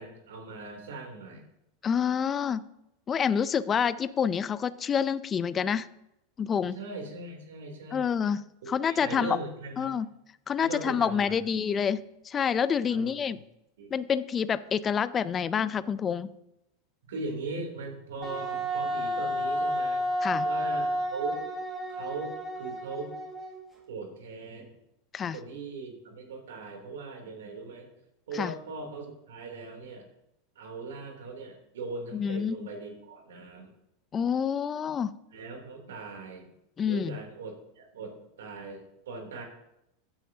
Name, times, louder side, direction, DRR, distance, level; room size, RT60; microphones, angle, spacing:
voice 1, 0.0-1.4 6.7-8.1 8.6-9.9 10.6-11.4 11.7-11.8 12.9-13.1 13.8-13.9 17.1-20.0 20.4-21.5 21.9-23.1 23.9-24.7 25.3-27.9 28.3-30.1 30.5-33.7 35.3-36.5 36.9-39.4, right 3 dB, 85° right, 2 dB, 3.2 m, -39 dB
voice 2, 1.8-2.6 3.1-5.9 6.4-6.7 7.9-8.4 8.7-9.4 9.8-10.1 10.5-12.0 12.2-13.4 13.9-16.3 20.2-20.5 25.1-25.4 28.3-28.5 32.1-32.7 34.1-35.1 36.8-37.2, left 7 dB, 30° left, 15 dB, 0.5 m, -27 dB
Wind instrument woodwind instrument, 18.2-23.7, equal, 20° right, 4.3 m, -31 dB
16.0 x 8.9 x 2.8 m, 0.82 s
hypercardioid pair, 105°, 0 cm